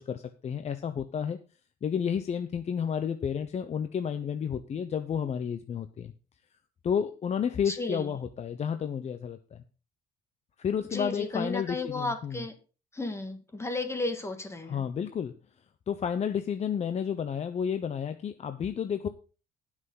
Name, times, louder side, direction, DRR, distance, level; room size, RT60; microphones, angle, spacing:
voice 1, 0.0-1.4 1.8-6.1 6.8-9.6 10.6-12.5 14.6-15.3 15.9-19.1, left 7 dB, 40° left, 8 dB, 0.9 m, -31 dB
voice 2, 7.7-8.1 10.9-12.5 12.9-14.8, left 2 dB, 15° left, 7 dB, 2.2 m, -33 dB
19.0 x 6.3 x 4.0 m, 0.34 s
cardioid pair, 110°, 17 cm